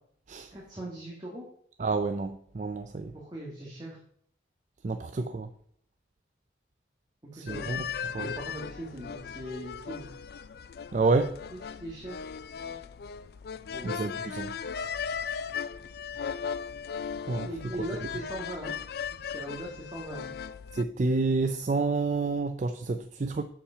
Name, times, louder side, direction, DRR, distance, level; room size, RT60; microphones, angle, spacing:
voice 1, 0.5-1.5 3.1-4.0 7.2-7.7 8.2-10.1 11.5-12.3 13.7-13.9 17.4-18.8 19.3-20.3, right 1 dB, 25° right, 1.8 m, -40 dB
voice 2, 1.8-3.1 4.8-5.5 7.3-7.8 8.1-8.3 10.9-11.4 13.8-14.5 17.2-17.5 20.7-23.4, right 3 dB, 40° right, 0.4 m, -29 dB
sound 1, 7.5-20.8, left 7 dB, 55° left, 0.3 m, -37 dB
7.4 x 7.2 x 5.5 m
head